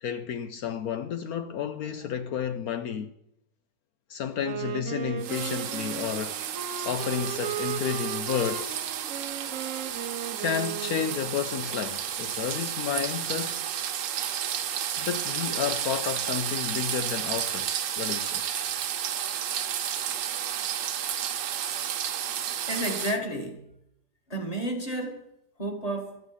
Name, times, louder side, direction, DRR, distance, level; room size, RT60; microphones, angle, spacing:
voice 1, 0.0-3.1 4.1-6.4 6.8-8.8 10.4-13.6 15.0-18.4, left 8 dB, 70° left, 1.0 m, -31 dB
Wind instrument woodwind instrument, 4.3-11.5, right 10 dB, 55° right, 1.0 m, -36 dB
sound 1, 5.2-23.2, right 9 dB, 80° right, 1.5 m, -32 dB
voice 2, 22.7-23.6 24.3-25.3 25.6-26.2, right 1 dB, 20° left, 1.7 m, -31 dB
13.0 x 8.1 x 7.1 m
omnidirectional pair, 1.9 m